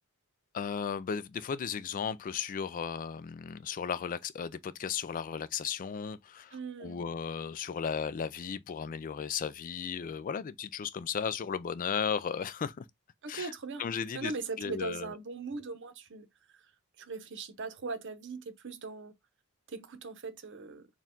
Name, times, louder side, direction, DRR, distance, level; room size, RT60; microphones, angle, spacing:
voice 1, 0.5-12.8 13.3-13.5 13.8-14.3 14.6-15.1, left 7 dB, 35° left, 0.3 m, -35 dB
voice 2, 6.5-7.0 13.2-13.8 14.1-16.3 16.5-16.7 17.0-19.1 19.7-20.9, right 4 dB, 55° right, 0.8 m, -40 dB
4.4 x 2.3 x 3.6 m
head